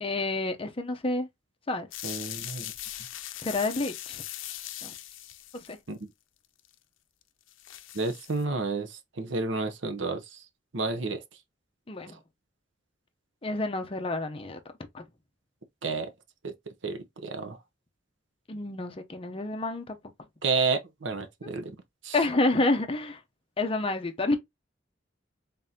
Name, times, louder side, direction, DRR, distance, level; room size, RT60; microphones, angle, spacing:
voice 1, 0.0-1.3 1.7-1.9 3.4-4.2 4.8-4.9 5.5-5.8 11.9-12.2 13.4-14.6 14.9-15.0 18.5-20.0 22.1-23.2 23.6-24.4, left 2 dB, 30° left, 0.7 m, -29 dB
sound 1, 1.9-5.8 6.6-6.7 7.2-7.3 7.5-8.4, left 13 dB, 90° left, 0.5 m, -40 dB
voice 2, 2.0-2.7 5.9-6.0 7.9-10.4 10.7-11.2 15.8-16.1 16.4-16.5 16.8-17.6 20.4-21.7 22.0-22.2, right 4 dB, 70° right, 0.7 m, -30 dB
3.8 x 3.7 x 2.8 m
head